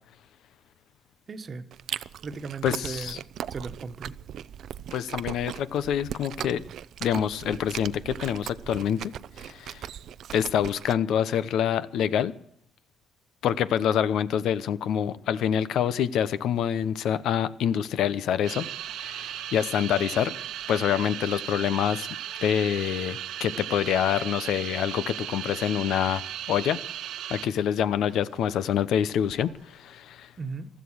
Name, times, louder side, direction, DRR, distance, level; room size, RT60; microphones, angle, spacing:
voice 1, 1.3-1.7 2.2-3.2 3.5-4.1 30.4-30.7, right 4 dB, 45° right, 1.3 m, -36 dB
Chewing mastication, 1.7-10.9, right 10 dB, 70° right, 0.5 m, -38 dB
voice 2, 2.6-3.2 4.9-6.6 7.0-9.1 9.4-9.9 10.3-12.3 13.4-18.7 19.0-20.3 20.7-22.1 22.4-26.2 26.5-26.8 27.3-30.3, left 9 dB, 80° left, 0.9 m, -26 dB
sound 1, 18.4-27.7 28.0-28.6 29.3-29.6, right 11 dB, 90° right, 1.2 m, -37 dB
15.5 x 13.5 x 6.4 m
cardioid pair, 90°, 0 cm